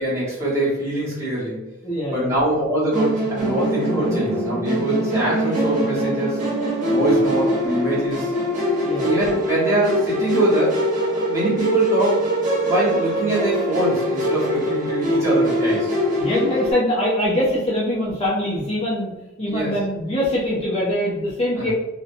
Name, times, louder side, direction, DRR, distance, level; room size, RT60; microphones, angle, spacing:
voice 1, 0.0-1.6 2.1-6.4 6.9-8.3 9.0-10.8 11.1-12.3 12.6-15.9 19.5-19.7 21.6-21.7, right 1 dB, 10° right, -9 dB, 1.0 m, -23 dB
voice 2, 1.8-2.3 7.0-7.2 8.8-9.1 16.2-19.1 19.4-21.7, equal, 25° left, -7 dB, 0.5 m, -23 dB
Musical instrument, 2.9-16.7, equal, 35° right, 0.7 m, -23 dB
2.7 x 2.1 x 2.5 m, 1.0 s
head